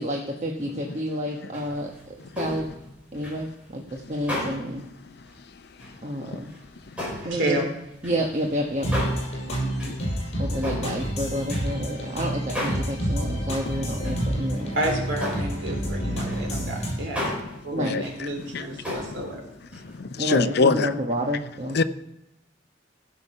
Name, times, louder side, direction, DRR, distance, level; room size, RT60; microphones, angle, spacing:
voice 1, 0.0-2.7 3.1-4.8 6.0-6.5 7.2-7.6 8.0-8.9 10.4-14.7 17.7-17.9 20.2-21.8, equal, 40° right, 1.2 m, -29 dB
sound 1, 1.5-4.8 5.2-5.4 5.8-6.1 6.4-12.1 12.5-13.0 13.3-13.4 13.8-14.2 14.5-14.8 15.1-20.0, left 1 dB, 5° right, 5.1 m, -35 dB
voice 2, 7.2-7.6 9.5-9.9 14.7-17.4 17.6-19.4, right 1 dB, 85° right, 3.4 m, -30 dB
sound 2, 8.8-16.9, equal, 35° left, 5.6 m, -29 dB
voice 3, 20.2-20.9 21.7-21.8, left 4 dB, 60° left, 0.6 m, -21 dB
15.5 x 7.0 x 5.6 m
head